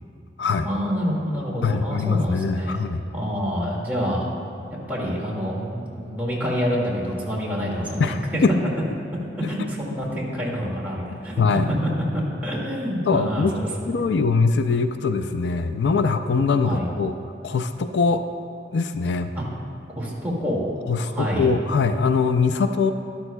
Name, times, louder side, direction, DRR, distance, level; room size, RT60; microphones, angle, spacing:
voice 1, 0.6-2.8 3.1-4.3 4.9-8.4 9.5-13.7 16.6-16.8 19.3-19.4 19.9-20.7 21.0-21.5, equal, 10° right, -6 dB, 2.1 m, -27 dB
voice 2, 1.6-3.0 8.0-8.5 9.4-9.7 11.4-11.7 13.1-13.5 13.9-17.1 17.4-18.2 18.7-19.3 20.9-22.9, left 4 dB, 75° left, 8 dB, 0.4 m, -22 dB
12.5 x 12.0 x 2.3 m, 2.7 s
head